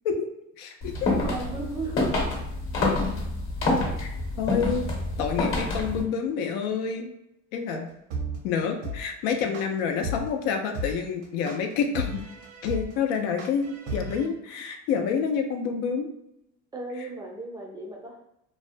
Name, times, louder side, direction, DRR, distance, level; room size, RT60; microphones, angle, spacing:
voice 1, 0.6-0.9 4.0-4.9 5.2-7.1 7.5-7.8 8.4-12.2 12.6-16.1, left 6 dB, 85° left, 4 dB, 0.5 m, -28 dB
sound 1, 0.8-6.0, left 2 dB, 40° left, 0.8 m, -27 dB
voice 2, 1.1-2.1 7.7-7.8 16.7-18.2, right 2 dB, 10° right, -2 dB, 0.4 m, -36 dB
sound 2, 8.1-14.3, right 1 dB, 70° right, 0.7 m, -33 dB
2.3 x 2.1 x 2.5 m, 0.82 s
cardioid pair, 130°, 33 cm